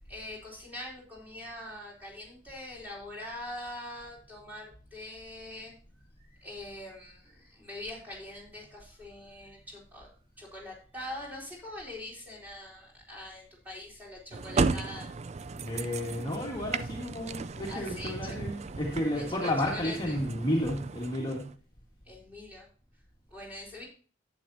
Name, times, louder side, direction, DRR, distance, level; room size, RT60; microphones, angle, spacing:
voice 1, 0.1-5.7 6.3-10.1 10.4-15.5 17.6-18.4 19.2-20.2 22.1-22.7 23.3-23.9, left 1 dB, 10° right, -4 dB, 4.1 m, -43 dB
sound 1, 14.3-21.5, right 4 dB, 35° right, 0.4 m, -35 dB
voice 2, 15.5-21.5, left 1 dB, 25° left, -2 dB, 1.7 m, -32 dB
11.0 x 8.7 x 2.7 m, 0.38 s
head